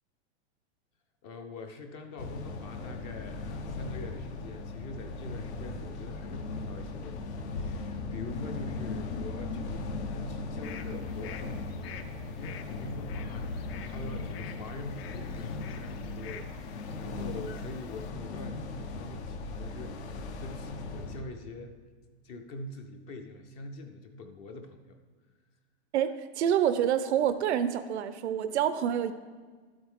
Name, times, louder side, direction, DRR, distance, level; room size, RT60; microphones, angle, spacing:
voice 1, 1.2-21.7 22.2-25.0, left 2 dB, 20° left, 7 dB, 0.4 m, -44 dB
sound 1, 2.2-21.2, left 3 dB, 80° left, 1.2 m, -38 dB
sound 2, 10.6-18.1, left 8 dB, 60° left, 0.8 m, -49 dB
voice 2, 25.9-29.1, right 9 dB, 85° right, 11 dB, 0.6 m, -27 dB
12.0 x 7.9 x 3.6 m, 1.5 s
supercardioid pair, 155°, 33 cm